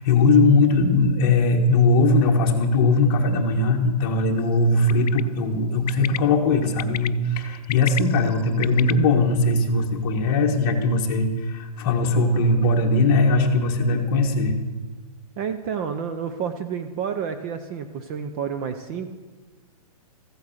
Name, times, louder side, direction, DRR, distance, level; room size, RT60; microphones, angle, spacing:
voice 1, 0.0-14.5, left 2 dB, 35° left, 2 dB, 1.6 m, -20 dB
Bird, 4.9-5.2 5.9-6.2 6.8-7.1 7.6-8.9, left 11 dB, 80° left, 0.4 m, -30 dB
voice 2, 15.4-19.1, right 7 dB, 20° right, 8 dB, 0.4 m, -29 dB
14.5 x 8.4 x 6.5 m, 1.3 s
hypercardioid pair, 165°, 19 cm